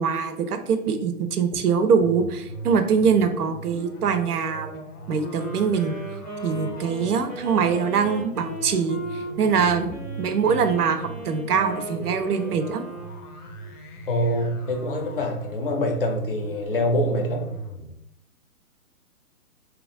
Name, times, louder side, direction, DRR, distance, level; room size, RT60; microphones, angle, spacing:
voice 1, 0.0-5.9 6.4-12.8, right 6 dB, 85° right, 8 dB, 0.5 m, -23 dB
sound 1, 1.9-17.9, right 1 dB, 85° left, 0.7 m, -40 dB
Wind instrument woodwind instrument, 5.2-13.8, right 1 dB, 5° right, 0.6 m, -37 dB
voice 2, 14.1-17.5, equal, 40° left, 3 dB, 0.5 m, -25 dB
2.9 x 2.3 x 2.5 m, 0.81 s
hypercardioid pair, 140°, 45 cm